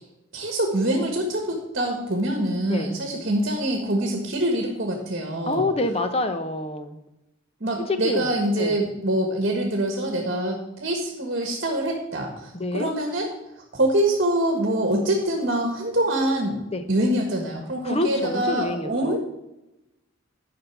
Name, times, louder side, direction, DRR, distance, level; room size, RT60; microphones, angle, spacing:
voice 1, 0.3-5.7 7.6-13.3 13.7-19.2, right 1 dB, 50° right, 2 dB, 1.5 m, -25 dB
voice 2, 5.5-7.0 7.9-8.3 8.6-8.9 12.5-12.9 16.7-16.8 17.8-19.2, left 2 dB, 30° left, 8 dB, 0.8 m, -27 dB
10.5 x 5.7 x 5.9 m, 0.94 s
head